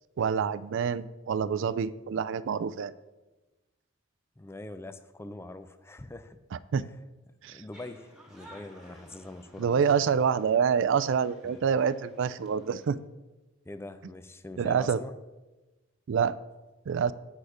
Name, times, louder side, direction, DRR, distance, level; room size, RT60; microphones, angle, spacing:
voice 1, 0.2-2.9 6.5-6.8 7.4-7.6 9.6-13.0 14.6-15.0 16.1-16.4 16.9-17.1, right 6 dB, 65° right, 16 dB, 0.3 m, -27 dB
voice 2, 4.4-6.4 6.7-7.0 7.5-9.8 11.4-11.6 13.6-15.1, left 2 dB, 10° left, 11 dB, 0.4 m, -43 dB
sound 1, 7.7-12.9, equal, 5° right, 1.6 m, -54 dB
8.2 x 6.3 x 4.9 m, 1.1 s
head